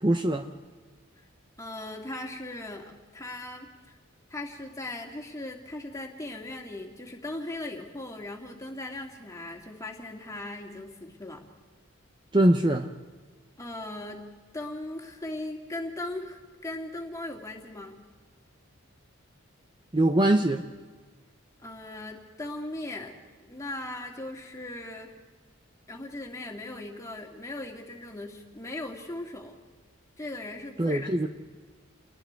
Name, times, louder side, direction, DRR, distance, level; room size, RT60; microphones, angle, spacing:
voice 1, 0.0-0.5 12.3-12.9 19.9-20.6 30.8-31.3, right 1 dB, 20° right, 6 dB, 0.8 m, -22 dB
voice 2, 1.6-4.0 4.3-11.4 13.6-14.3 14.5-18.0 21.6-23.1 23.4-25.1 25.9-29.6 30.2-31.2, left 2 dB, 15° left, 1 dB, 2.7 m, -38 dB
29.5 x 20.5 x 4.7 m, 1.4 s
head